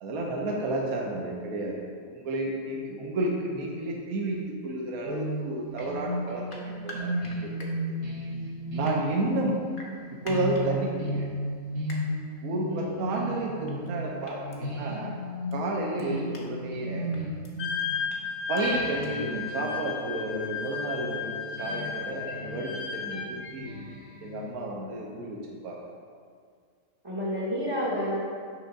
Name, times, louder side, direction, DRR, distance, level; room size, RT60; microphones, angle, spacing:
voice 1, 0.0-4.4 4.6-7.5 8.7-9.5 10.2-11.3 12.4-15.2 15.5-17.1 18.5-23.8 24.2-25.8, right 2 dB, 80° right, -1 dB, 1.2 m, -31 dB
sound 1, 5.0-18.1 18.6-24.5, equal, 65° right, 1.5 m, -35 dB
sound 2, 5.7-5.9 6.5-7.7 8.6-9.0 9.7-10.6 11.9-12.0 13.7-13.9 14.2-14.6 15.5-15.6 16.0-16.4 17.1-17.5 18.1-18.2 18.5-18.6 19.0-19.1, left 2 dB, 45° left, 0.8 m, -45 dB
voice 2, 12.7-13.2 27.0-28.2, equal, 25° right, -7 dB, 0.6 m, -30 dB
Wind instrument woodwind instrument, 17.6-23.6, left 6 dB, 85° left, 1.2 m, -34 dB
6.3 x 3.4 x 5.2 m, 2.1 s
omnidirectional pair, 1.5 m